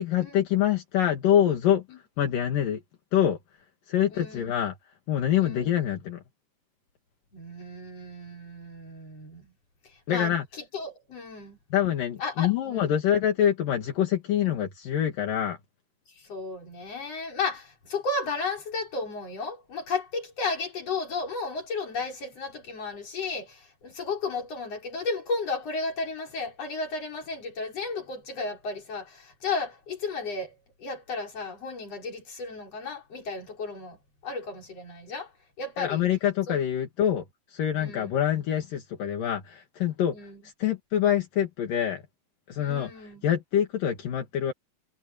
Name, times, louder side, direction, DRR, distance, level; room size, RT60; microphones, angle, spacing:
voice 1, 0.0-1.8 2.2-2.8 3.1-3.4 3.9-4.8 5.1-6.2 10.1-10.5 11.7-15.6 35.8-40.2 40.4-42.0 42.5-44.5, left 10 dB, 70° left, 3.6 m, -25 dB
voice 2, 4.1-4.5 5.4-5.7 7.3-9.5 10.1-10.3 10.7-11.6 12.2-13.0 14.4-14.7 16.2-34.0 34.2-35.3 35.6-36.1 36.5-36.6 37.8-38.1 40.1-40.4 42.6-43.3, left 3 dB, 45° left, 6.2 m, -34 dB
omnidirectional pair, 4.1 m